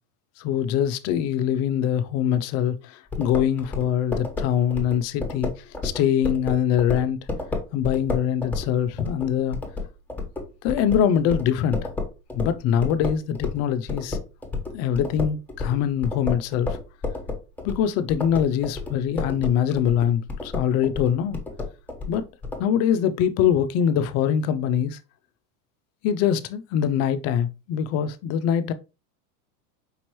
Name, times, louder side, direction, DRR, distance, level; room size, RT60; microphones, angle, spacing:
voice 1, 0.4-5.5 5.8-7.2 7.7-9.6 10.6-11.9 12.3-14.2 14.7-16.8 17.6-21.4 22.1-22.3 22.6-25.0 26.0-28.7, left 9 dB, 35° left, 0.4 m, -23 dB
sound 1, 3.1-13.6 13.9-22.6, left 3 dB, 5° left, 1.0 m, -31 dB
5.2 x 2.9 x 3.0 m
supercardioid pair, 125°, 47 cm